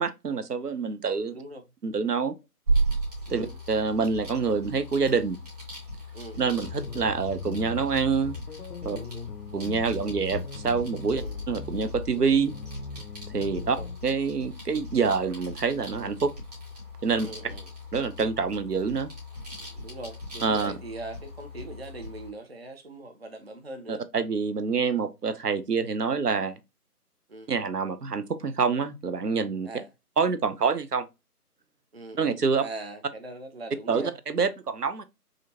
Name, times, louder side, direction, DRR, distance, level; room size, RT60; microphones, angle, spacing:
voice 1, 0.0-1.4 1.8-2.4 3.3-5.4 6.4-8.3 8.8-9.0 9.5-11.2 11.5-12.5 13.3-13.8 14.0-16.3 17.0-17.3 17.9-19.1 20.4-20.7 23.9-26.6 27.5-29.7 30.2-31.1 32.1-32.6 33.9-35.0, right 5 dB, 80° right, 0.7 m, -26 dB
voice 2, 1.3-1.6 3.3-3.6 6.1-6.8 8.9-9.3 11.1-11.4 13.6-13.9 17.2-17.7 19.5-24.0 24.8-24.9 27.3-27.5 29.6-29.9 31.9-34.2, right 2 dB, 45° right, 0.5 m, -41 dB
sound 1, 2.7-22.3, right 2 dB, 25° right, 1.3 m, -36 dB
sound 2, 6.6-14.0, left 4 dB, 65° left, 0.5 m, -38 dB
4.9 x 2.6 x 2.7 m
figure-of-eight pair, 155°, 47 cm